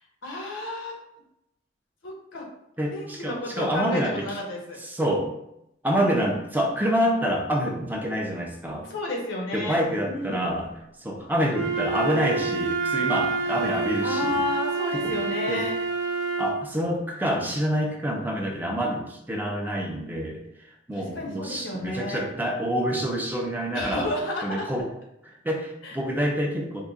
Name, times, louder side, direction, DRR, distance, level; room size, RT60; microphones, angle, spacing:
voice 1, 0.2-1.0 2.0-2.5 2.9-4.8 8.8-10.4 14.0-15.8 20.9-22.2 23.7-24.6 25.8-26.0, left 2 dB, 90° left, -1 dB, 1.0 m, -32 dB
voice 2, 2.8-4.4 4.8-5.4 5.8-8.9 9.5-10.7 11.0-14.4 14.9-15.2 15.5-15.7 16.4-24.1 24.4-24.9 25.3-26.8, equal, 10° right, 0 dB, 0.4 m, -27 dB
Wind instrument woodwind instrument, 11.5-16.7, right 4 dB, 85° right, 0.5 m, -28 dB
3.7 x 2.1 x 3.5 m, 0.81 s
head